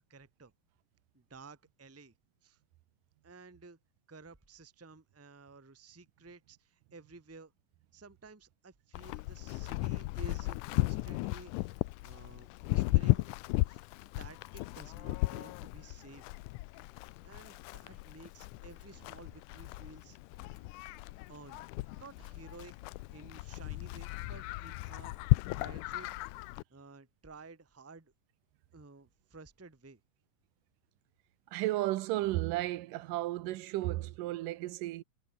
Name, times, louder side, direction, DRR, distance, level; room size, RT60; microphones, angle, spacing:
voice 1, 0.1-0.5 1.1-2.1 2.4-2.6 3.2-3.8 4.1-7.5 7.9-11.7 12.0-13.3 13.7-13.8 14.2-16.3 17.2-20.2 21.3-25.2 25.5-26.1 26.7-28.1 28.7-30.0, right 3 dB, 20° right, 0.4 m, -53 dB
Livestock farm animals working animals, 8.9-26.6, left 19 dB, 80° left, 1.9 m, -35 dB
voice 2, 31.5-35.0, right 16 dB, 80° right, 2.4 m, -33 dB
omnidirectional pair, 4.0 m